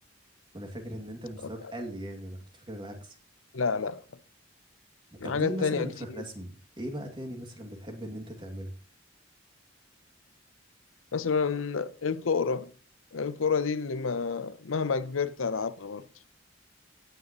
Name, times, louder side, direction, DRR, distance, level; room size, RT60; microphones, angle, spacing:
voice 1, 0.5-3.2 5.2-8.7, right 1 dB, 25° right, 2.3 m, -38 dB
voice 2, 3.5-4.0 5.2-5.9 11.1-12.7 13.1-16.0, left 5 dB, 90° left, 0.7 m, -29 dB
16.5 x 9.1 x 3.0 m
head